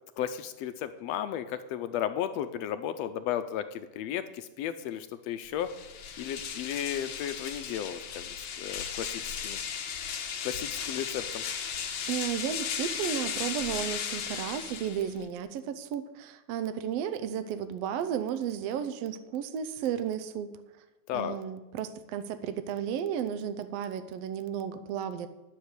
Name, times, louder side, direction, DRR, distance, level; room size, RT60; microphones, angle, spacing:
voice 1, 0.2-5.7 6.2-9.6 10.4-11.4 21.1-21.4, left 10 dB, 80° left, 10 dB, 1.5 m, -34 dB
sound 1, 5.6-15.3, left 7 dB, 65° left, 1.3 m, -36 dB
voice 2, 12.1-20.5 21.1-25.3, right 9 dB, 75° right, 11 dB, 1.5 m, -33 dB
10.5 x 6.8 x 8.1 m, 1.0 s
omnidirectional pair, 3.4 m